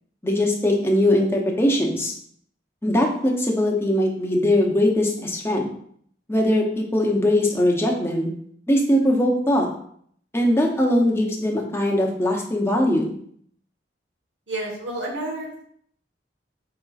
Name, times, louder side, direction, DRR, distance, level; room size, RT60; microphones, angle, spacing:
voice 1, 0.2-2.1 2.8-5.7 6.3-8.3 8.7-9.7 10.3-13.2, left 1 dB, 15° left, -1 dB, 0.7 m, -21 dB
voice 2, 14.5-15.6, right 1 dB, 90° right, -1 dB, 1.2 m, -30 dB
5.0 x 3.9 x 2.4 m, 0.63 s
head